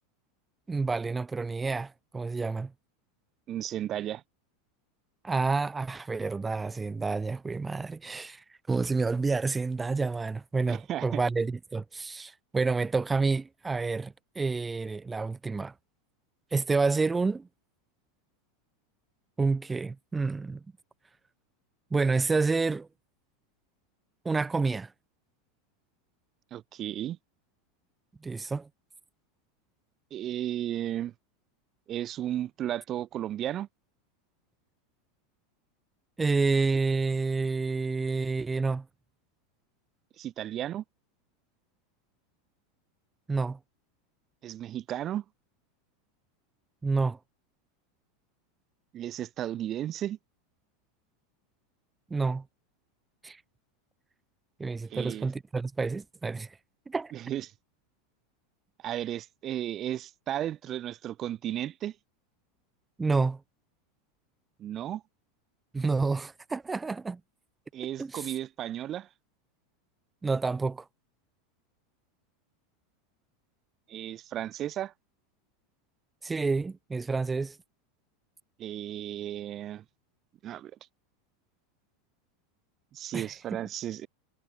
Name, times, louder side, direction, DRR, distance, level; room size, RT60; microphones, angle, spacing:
voice 1, 0.7-2.7 5.2-15.7 16.5-17.5 19.4-20.6 21.9-22.9 24.2-24.9 28.2-28.7 36.2-38.8 43.3-43.6 46.8-47.2 52.1-52.4 53.2-53.4 54.6-56.6 56.9-57.1 63.0-63.4 65.7-67.2 68.0-68.3 70.2-70.8 76.2-77.6 83.1-83.3, right 4 dB, 15° right, 4.3 m, -29 dB
voice 2, 3.5-4.2 10.7-11.0 26.5-27.2 30.1-31.1 31.9-33.7 40.2-40.8 44.4-45.2 48.9-50.2 54.9-55.3 57.1-57.5 58.8-62.0 64.6-65.0 67.7-69.1 73.9-74.9 78.6-79.8 80.4-80.7 82.9-84.1, right 12 dB, 40° right, 4.4 m, -34 dB
hypercardioid pair, 95°, 0 cm